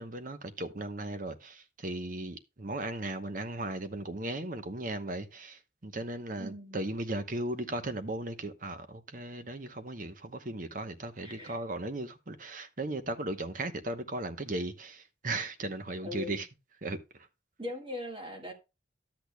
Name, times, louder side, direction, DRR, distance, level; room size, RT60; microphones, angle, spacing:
voice 1, 0.0-16.5 16.8-17.0, right 2 dB, 40° right, 0.9 m, -37 dB
voice 2, 6.4-6.8 11.2-11.6 16.0-16.4 17.6-18.5, left 1 dB, 25° right, 1.7 m, -40 dB
12.0 x 8.3 x 2.2 m
head